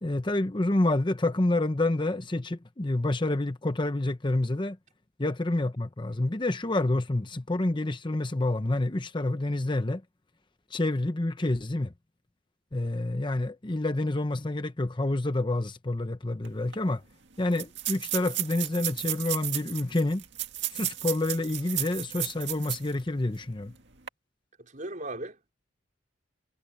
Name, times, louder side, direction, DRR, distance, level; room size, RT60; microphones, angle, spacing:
voice 1, 0.0-4.8 5.2-10.0 10.7-11.9 12.7-17.0 17.4-20.2 20.7-23.7, left 2 dB, 25° left, 0.8 m, -28 dB
sound 1, 16.4-16.5 16.7-16.8 17.5-22.9 23.3-23.4 23.9-24.1, right 14 dB, 65° right, 2.2 m, -33 dB
voice 2, 24.6-25.5, right 2 dB, 45° right, 4.9 m, -38 dB
head